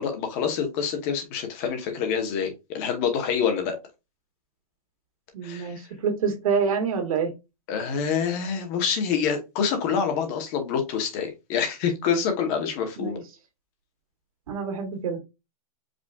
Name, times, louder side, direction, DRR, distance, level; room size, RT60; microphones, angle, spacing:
voice 1, 0.0-3.8 5.4-5.8 7.7-13.2, left 7 dB, 25° left, 0.9 m, -26 dB
voice 2, 5.3-7.3 13.0-13.2 14.5-15.2, right 6 dB, 70° right, 1.9 m, -27 dB
5.1 x 2.5 x 3.4 m
supercardioid pair, 175°, 19 cm